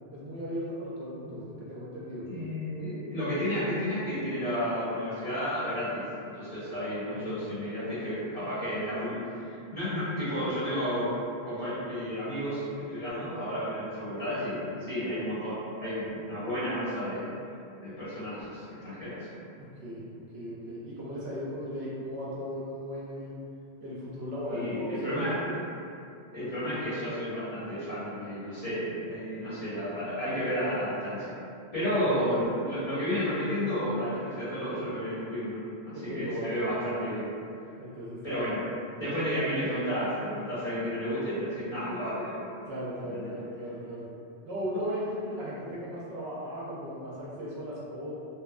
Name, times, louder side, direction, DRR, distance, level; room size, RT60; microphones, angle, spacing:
voice 1, 0.1-2.3 7.2-7.4 19.6-23.3 23.8-25.6 31.8-32.2 35.9-36.8 37.8-38.4 42.6-44.1 44.4-48.1, equal, 70° right, -7 dB, 0.8 m, -37 dB
voice 2, 2.3-11.1 11.5-17.3 17.8-19.3 24.5-25.6 26.3-31.4 31.7-37.3 38.2-38.6 39.0-42.3 43.1-43.3, equal, 30° left, -15 dB, 1.2 m, -32 dB
2.9 x 2.2 x 2.3 m, 2.6 s
omnidirectional pair, 1.2 m